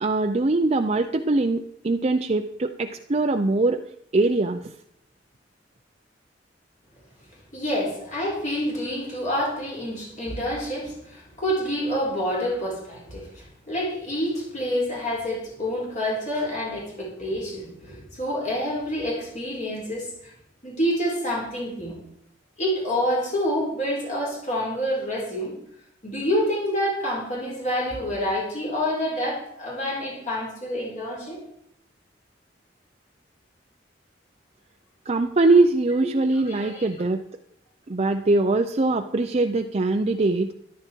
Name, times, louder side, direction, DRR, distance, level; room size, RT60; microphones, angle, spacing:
voice 1, 0.0-3.8 4.1-4.6 35.1-37.2 37.9-40.5, right 2 dB, 35° right, 5 dB, 0.6 m, -22 dB
voice 2, 7.5-20.3 20.6-22.0 22.6-25.6 26.0-31.4 36.0-36.1 36.5-36.8, equal, 45° left, -3 dB, 4.3 m, -27 dB
13.5 x 11.5 x 4.5 m, 0.74 s
head